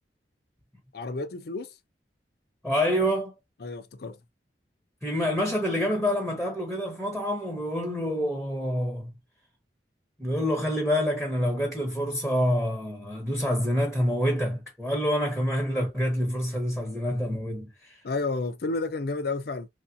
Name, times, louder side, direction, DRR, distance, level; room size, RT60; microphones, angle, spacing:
voice 1, 0.9-1.8 3.6-4.2 18.0-19.7, left 3 dB, 60° left, 0.5 m, -31 dB
voice 2, 2.6-3.3 5.0-9.1 10.2-18.0, equal, ahead, 0.8 m, -27 dB
3.1 x 2.6 x 2.6 m
head